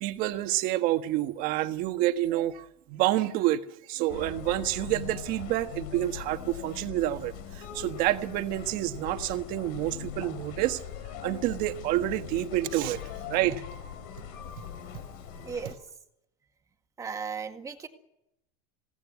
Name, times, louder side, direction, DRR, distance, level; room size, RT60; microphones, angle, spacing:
voice 1, 0.0-3.6 3.9-10.8 11.2-13.0 13.3-13.6, right 15 dB, 45° right, 8 dB, 1.5 m, -28 dB
sound 1, 4.1-15.7, left 8 dB, 60° left, 3.8 m, -41 dB
voice 2, 15.4-15.7 17.0-17.9, right 6 dB, 15° right, 6 dB, 1.9 m, -36 dB
22.0 x 17.5 x 9.5 m, 0.82 s
supercardioid pair, 150°, 20 cm